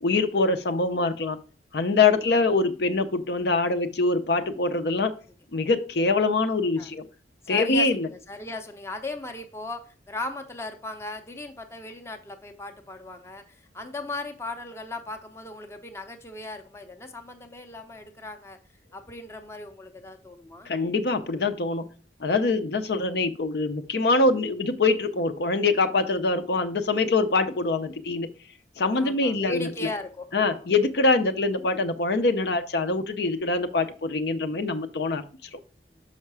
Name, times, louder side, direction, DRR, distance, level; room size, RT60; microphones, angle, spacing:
voice 1, 0.0-1.4 1.7-5.1 5.5-7.0 7.5-8.1 20.7-21.9 22.2-28.3 28.8-29.7 30.3-35.2 35.5-35.6, left 3 dB, 60° left, 0.6 m, -24 dB
voice 2, 7.5-13.4 13.7-18.6 18.9-20.7 28.9-30.6, left 2 dB, 15° left, 0.6 m, -37 dB
5.8 x 5.5 x 4.7 m
head